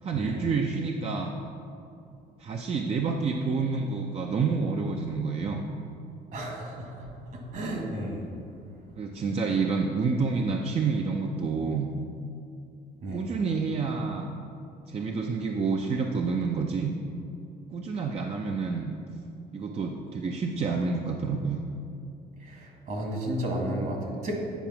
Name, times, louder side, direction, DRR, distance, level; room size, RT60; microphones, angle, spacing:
voice 1, 0.0-1.3 2.4-5.6 9.0-11.9 13.1-14.3 14.9-16.9 17.7-18.9 19.5-21.6, right 4 dB, 35° right, 2 dB, 0.6 m, -28 dB
voice 2, 6.3-7.1 7.5-8.2 13.0-13.2 22.4-24.4, right 1 dB, 55° right, 0 dB, 1.9 m, -32 dB
9.2 x 5.0 x 5.8 m, 2.6 s
cardioid pair, 110°, 17 cm